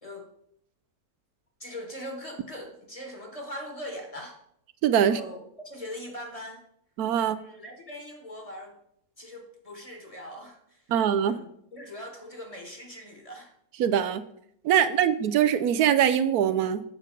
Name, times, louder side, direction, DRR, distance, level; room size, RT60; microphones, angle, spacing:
voice 1, 1.6-4.4 5.0-5.4 5.6-6.6 7.1-8.8 9.2-10.9 11.2-13.5 14.7-14.8, left 1 dB, 25° left, 2 dB, 1.5 m, -41 dB
voice 2, 4.8-5.2 7.0-7.4 10.9-11.4 13.8-14.2 14.6-16.8, right 9 dB, 80° right, 12 dB, 1.1 m, -22 dB
8.4 x 6.3 x 5.0 m, 0.72 s
omnidirectional pair, 1.6 m